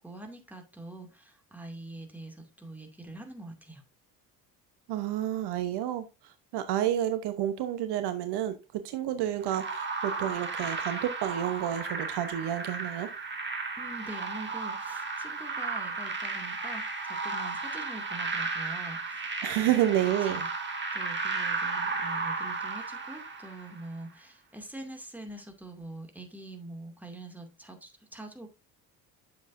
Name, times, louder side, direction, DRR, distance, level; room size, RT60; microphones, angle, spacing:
voice 1, 0.0-3.8 13.8-19.3 19.6-20.5 20.9-28.5, right 2 dB, 5° right, 2.4 m, -44 dB
voice 2, 4.9-13.1 19.4-20.4, right 12 dB, 60° right, 1.0 m, -30 dB
sound 1, 9.5-23.8, right 4 dB, 25° right, 2.1 m, -34 dB
9.3 x 7.1 x 2.6 m
hypercardioid pair, 60°, 46 cm